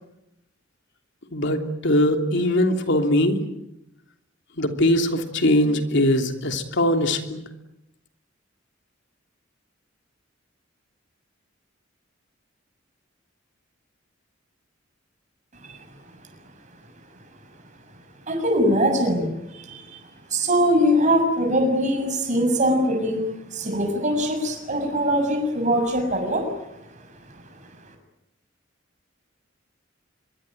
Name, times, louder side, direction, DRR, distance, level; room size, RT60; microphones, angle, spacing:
voice 1, 1.3-3.4 4.6-7.4, left 1 dB, 65° left, 5 dB, 3.2 m, -21 dB
voice 2, 18.3-19.3 19.6-20.0 20.3-23.3 23.5-26.5, equal, 40° right, 4 dB, 6.9 m, -22 dB
25.0 x 22.5 x 9.1 m, 0.86 s
head